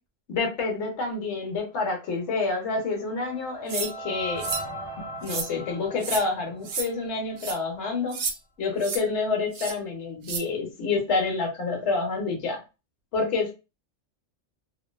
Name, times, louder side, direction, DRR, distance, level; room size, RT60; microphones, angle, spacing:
voice 1, 0.3-4.5 5.2-8.2 8.6-12.6 13.1-13.5, left 4 dB, 70° left, 2 dB, 1.1 m, -28 dB
sound 1, 2.4-7.5, equal, 35° left, 0.4 m, -39 dB
sound 2, 3.7-3.9 4.4-4.7 5.2-5.5 6.0-6.2 6.7-6.9 7.4-7.6 8.1-8.4 8.8-9.0 9.5-9.7 10.2-10.4, right 5 dB, 65° right, 0.8 m, -31 dB
2.8 x 2.1 x 2.2 m, 0.29 s
omnidirectional pair, 1.3 m